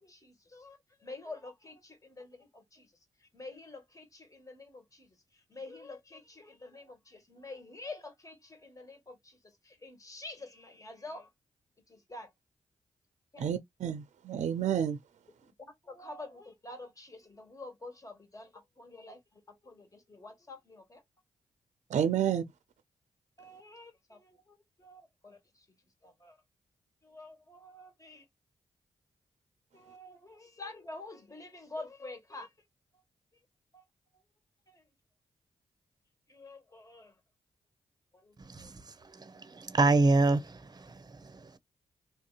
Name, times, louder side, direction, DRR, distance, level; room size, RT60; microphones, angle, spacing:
voice 1, 0.0-2.9 3.2-5.1 5.5-9.4 9.6-11.3 11.9-12.3 13.3-13.4 15.6-21.0 23.4-25.6 26.0-26.4 27.0-28.2 29.7-32.5 33.7-33.8 34.7-34.8 36.3-37.1 38.1-38.7, left 2 dB, 25° left, 1.6 m, -48 dB
voice 2, 13.4-15.0 21.9-22.4, right 9 dB, 70° right, 0.5 m, -30 dB
voice 3, 38.4-38.8 39.1-41.6, right 3 dB, 35° right, 0.7 m, -27 dB
3.4 x 2.7 x 2.4 m
supercardioid pair, 45°, 12 cm